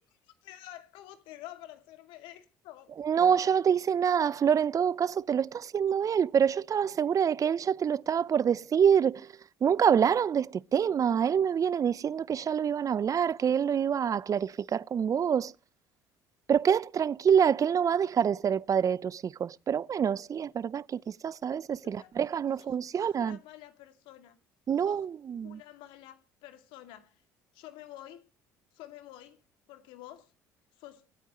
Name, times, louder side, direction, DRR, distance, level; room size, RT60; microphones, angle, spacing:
voice 1, 0.0-2.9 21.8-22.1 23.0-24.4 24.8-25.0 25.4-27.2 27.5-28.2 28.7-29.4 29.7-30.3 30.8-31.0, left 13 dB, 70° left, 2.4 m, -49 dB
voice 2, 3.0-9.3 9.6-15.5 16.5-23.4 24.7-25.6, right 8 dB, 40° right, 0.6 m, -26 dB
26.5 x 9.1 x 3.0 m
hypercardioid pair, 60°, 9 cm